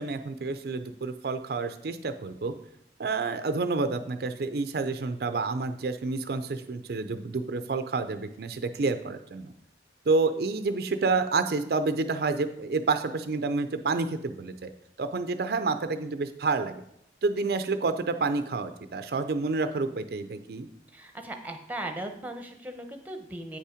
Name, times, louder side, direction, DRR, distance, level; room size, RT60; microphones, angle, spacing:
voice 1, 0.0-2.5 3.0-9.5 10.1-14.7 15.0-16.8 17.2-20.7, right 3 dB, 55° right, 9 dB, 0.4 m, -29 dB
voice 2, 20.9-23.6, right 1 dB, 10° right, 6 dB, 0.7 m, -38 dB
8.5 x 5.5 x 5.0 m, 0.74 s
head